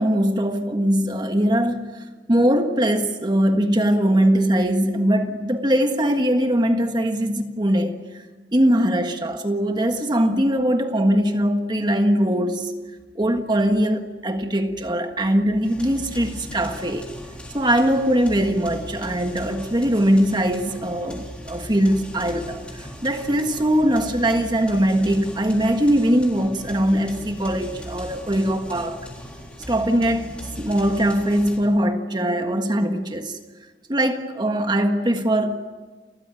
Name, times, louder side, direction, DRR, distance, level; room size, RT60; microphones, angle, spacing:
voice 1, 0.0-8.1 8.5-12.7 13.1-17.1 17.5-29.0 29.7-33.4 33.9-35.6, equal, 25° right, 1.6 m, -21 dB
sound 1, 15.6-31.6, equal, 5° left, 3.9 m, -38 dB
30.0 x 15.0 x 9.1 m
head